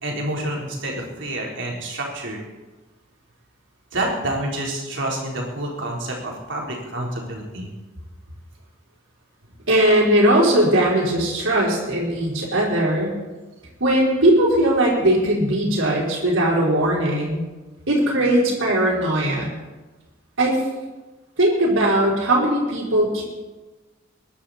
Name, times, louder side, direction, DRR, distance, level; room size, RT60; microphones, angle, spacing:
voice 1, 0.0-2.4 3.9-7.7, right 1 dB, 65° right, -1 dB, 4.0 m, -28 dB
voice 2, 9.7-13.2 13.8-17.4 17.9-19.5 20.4-20.6 21.4-23.2, right 1 dB, 85° right, -4 dB, 4.7 m, -19 dB
22.5 x 11.5 x 4.3 m, 1.2 s
head